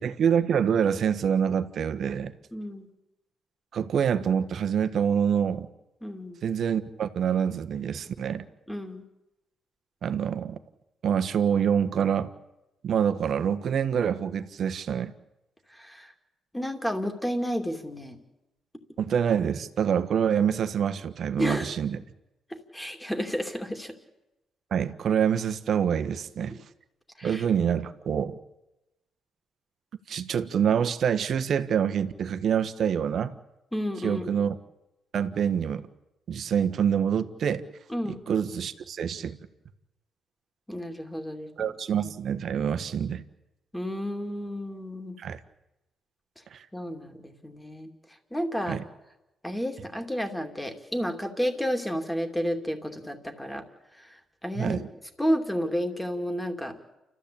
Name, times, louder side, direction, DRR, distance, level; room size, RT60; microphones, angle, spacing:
voice 1, 0.0-2.3 3.7-5.7 6.4-8.5 10.0-10.6 11.0-12.3 12.8-15.1 19.0-22.0 24.7-26.6 27.2-28.3 30.1-33.4 34.0-34.6 35.1-35.9 36.3-37.6 38.3-39.4 41.6-43.2 45.2-45.4 46.5-46.6 48.7-48.8 54.5-54.9, right 8 dB, 60° right, 8 dB, 1.5 m, -26 dB
voice 2, 2.5-2.9 6.0-6.4 8.7-9.0 15.7-16.1 16.5-18.2 21.4-21.7 22.5-23.9 27.2-27.4 33.7-34.3 37.9-38.2 40.7-41.5 43.7-45.2 46.7-47.9 48.3-48.8 49.4-53.6 54.0-54.8 55.2-56.8, equal, 5° left, 5 dB, 2.8 m, -31 dB
29.5 x 14.0 x 8.7 m, 0.96 s
cardioid pair, 90°, 0 cm